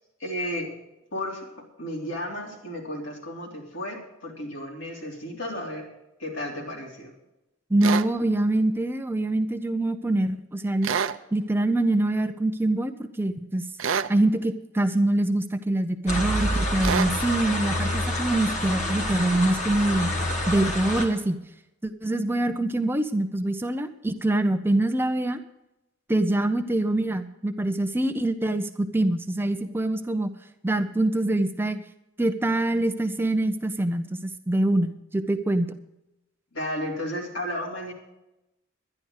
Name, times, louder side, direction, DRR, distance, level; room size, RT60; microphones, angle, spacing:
voice 1, 0.2-0.7 1.1-5.9 6.2-7.1 36.5-37.9, left 1 dB, 70° left, -1 dB, 3.4 m, -33 dB
voice 2, 7.7-10.9 11.3-13.7 14.1-20.2 20.5-21.4 21.8-25.4 26.1-30.3 30.6-31.8 32.2-35.7, right 1 dB, 10° right, 8 dB, 0.5 m, -24 dB
sound 1, 7.8-8.1 10.8-11.2 13.8-14.1 16.8-17.1, right 6 dB, 80° right, 0.5 m, -26 dB
sound 2, 16.1-21.1, left 1 dB, 40° left, 2.2 m, -27 dB
11.5 x 10.5 x 6.4 m, 0.93 s
head